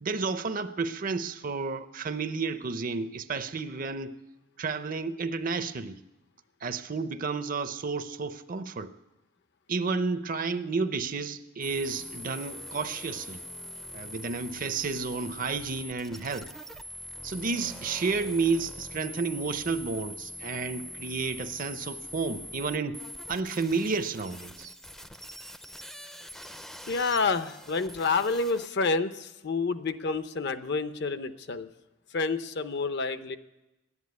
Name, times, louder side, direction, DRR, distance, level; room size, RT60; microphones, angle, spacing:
voice 1, 0.0-4.1 4.6-6.0 6.6-8.9 9.7-13.4 13.9-16.5 17.2-23.0 23.3-24.7, right 4 dB, 45° right, 11 dB, 0.6 m, -31 dB
sound 1, 11.6-28.7, equal, 5° left, 0.5 m, -43 dB
voice 2, 26.9-31.7 32.1-33.4, left 4 dB, 55° left, 11 dB, 0.6 m, -29 dB
12.0 x 9.7 x 9.5 m, 0.99 s
head